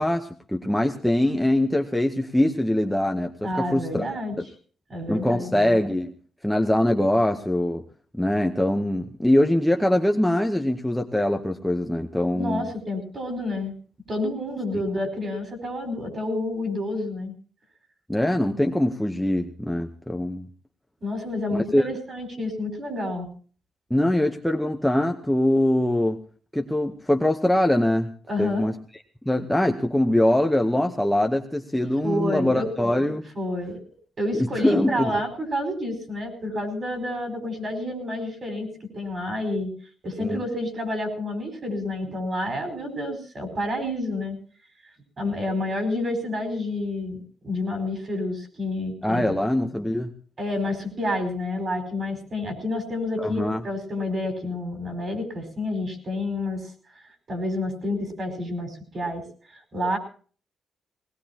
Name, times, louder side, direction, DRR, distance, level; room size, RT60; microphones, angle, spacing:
voice 1, 0.0-4.0 4.4-4.5 5.1-6.1 6.4-7.8 8.1-12.7 18.1-20.5 21.5-21.9 23.9-26.2 26.5-28.1 28.4-28.7 29.3-33.2 34.6-35.1 40.2-40.4 49.0-50.1 53.2-53.6, left 1 dB, 5° left, 3 dB, 0.9 m, -23 dB
voice 2, 3.4-4.4 4.9-5.5 12.3-13.7 14.1-17.3 21.0-23.3 28.3-28.7 32.0-32.7 33.3-33.8 34.2-39.7 40.0-44.4 45.2-49.4 50.4-56.7 57.3-59.2 59.5-60.0, left 1 dB, 35° right, 5 dB, 4.8 m, -29 dB
20.5 x 19.0 x 2.9 m, 0.42 s
cardioid pair, 140°, 0 cm